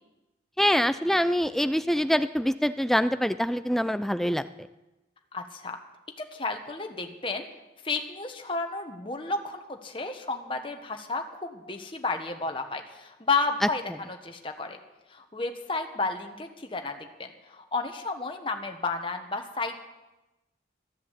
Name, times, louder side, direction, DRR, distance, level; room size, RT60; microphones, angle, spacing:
voice 1, 0.6-4.4, equal, ahead, 13 dB, 0.4 m, -25 dB
voice 2, 5.3-5.8 6.2-7.5 7.8-14.8 15.1-19.8, left 3 dB, 25° left, 4 dB, 1.2 m, -32 dB
13.5 x 10.5 x 8.1 m, 1.0 s
head